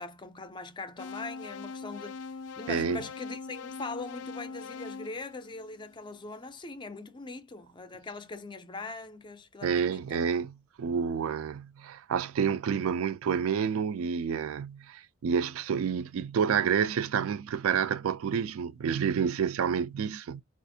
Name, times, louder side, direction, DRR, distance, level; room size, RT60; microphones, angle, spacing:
voice 1, 0.0-10.3, left 3 dB, 20° left, 0.4 m, -41 dB
sound 1, 1.0-6.1, left 4 dB, 90° left, 0.4 m, -42 dB
voice 2, 2.7-3.0 9.6-10.5 10.8-20.4, right 7 dB, 65° right, 0.3 m, -29 dB
4.2 x 2.4 x 2.6 m
head